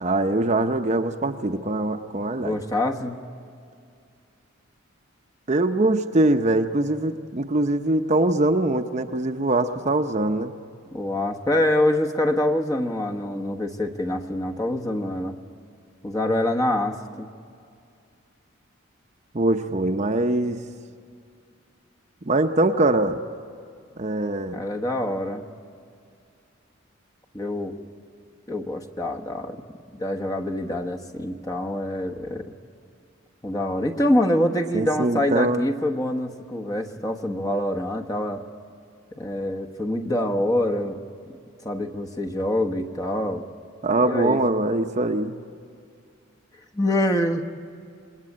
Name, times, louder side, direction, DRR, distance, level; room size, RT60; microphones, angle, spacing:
voice 1, 0.0-2.5 5.5-10.5 19.3-20.6 22.2-23.2 24.0-24.6 34.7-35.6 43.8-45.4, right 2 dB, 35° right, 6 dB, 0.8 m, -22 dB
voice 2, 2.4-3.2 10.9-15.4 16.0-17.3 24.5-25.4 27.3-27.8 28.5-29.6 29.9-32.5 33.4-38.5 39.1-41.0 41.6-43.4 44.0-44.4 46.7-47.4, left 1 dB, 20° left, 2 dB, 1.2 m, -25 dB
27.5 x 20.5 x 8.6 m, 2.3 s
head